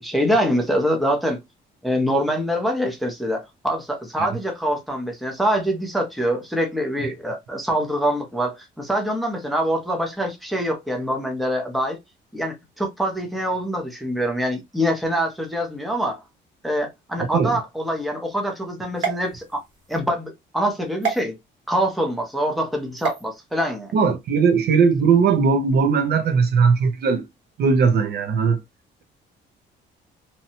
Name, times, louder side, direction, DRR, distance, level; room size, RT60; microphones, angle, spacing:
voice 1, 0.0-1.4 1.8-12.0 12.3-16.2 16.6-19.6 19.9-21.3 21.7-23.9, equal, ahead, 0.5 m, -24 dB
voice 2, 17.2-17.6 23.9-27.2 27.6-28.6, right 5 dB, 55° right, 0.5 m, -18 dB
sound 1, 19.0-20.0 21.0-21.2 23.0-23.2, right 6 dB, 75° right, 1.1 m, -28 dB
2.7 x 2.2 x 2.7 m
cardioid pair, 175°, 20 cm